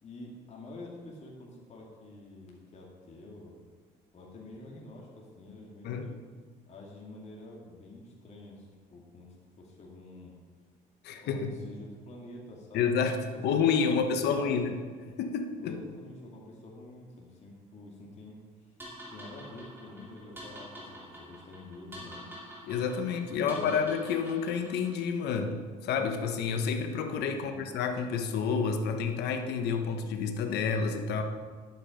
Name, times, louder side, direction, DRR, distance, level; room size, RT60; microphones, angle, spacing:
voice 1, 0.0-3.5 4.1-6.2 6.7-10.3 11.2-13.0 13.9-14.7 15.6-18.4 19.1-22.4 23.4-23.8 27.3-27.7, left 2 dB, 40° left, -3 dB, 2.3 m, -47 dB
voice 2, 11.0-11.5 12.7-14.8 15.2-15.8 22.6-31.2, left 6 dB, 80° left, 6 dB, 1.2 m, -29 dB
sound 1, 18.8-25.0, equal, 10° right, 3.1 m, -47 dB
10.5 x 8.5 x 5.1 m, 1.5 s
cardioid pair, 110°, 17 cm